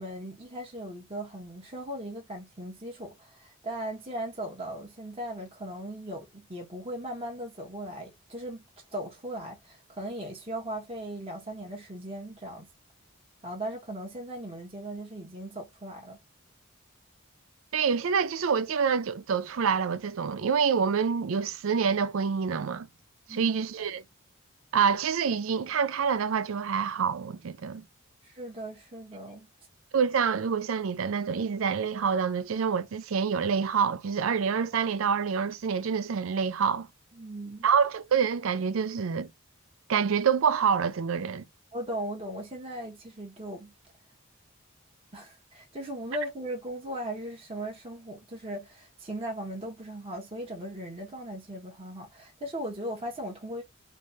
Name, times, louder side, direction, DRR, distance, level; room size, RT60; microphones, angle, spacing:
voice 1, 0.0-12.7 13.4-16.2 23.3-23.5 28.2-29.5 37.1-37.7 41.7-43.7 45.1-53.6, right 1 dB, 25° right, 1.0 m, -38 dB
voice 2, 17.7-22.9 23.3-24.0 24.7-27.8 29.9-36.9 37.6-39.3 39.9-41.4, right 6 dB, 75° right, 0.4 m, -27 dB
3.3 x 3.2 x 2.7 m
head